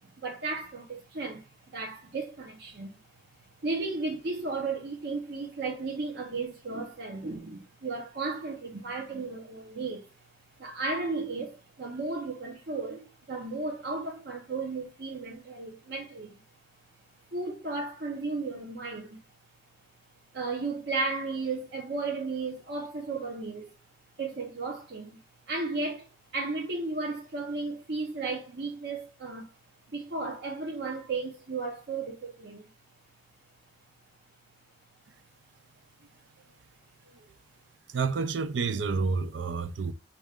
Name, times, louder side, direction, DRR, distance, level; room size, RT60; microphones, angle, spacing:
voice 1, 0.0-3.0 3.6-10.1 10.6-16.4 17.3-19.2 20.3-23.7 24.2-25.2 25.5-29.5 29.9-32.7, right 3 dB, 65° right, 0.9 m, -34 dB
voice 2, 37.9-39.9, right 4 dB, 90° right, 0.5 m, -29 dB
5.9 x 2.5 x 3.5 m
head